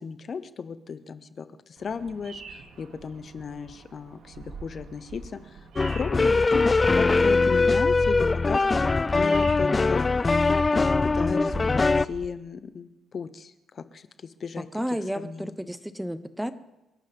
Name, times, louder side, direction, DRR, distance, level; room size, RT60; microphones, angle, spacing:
voice 1, 0.0-5.6 5.9-6.6 6.9-10.1 10.7-14.7 15.2-15.4, left 6 dB, 45° left, 12 dB, 0.9 m, -35 dB
Bird vocalization bird call bird song, 1.8-12.3, right 4 dB, 80° right, 2.5 m, -46 dB
sound 1, 5.8-12.1, left 3 dB, 25° left, 0.4 m, -21 dB
voice 2, 14.6-16.5, equal, 5° right, 12 dB, 0.9 m, -32 dB
29.0 x 11.5 x 3.6 m, 0.99 s
cardioid pair, 90°, 0 cm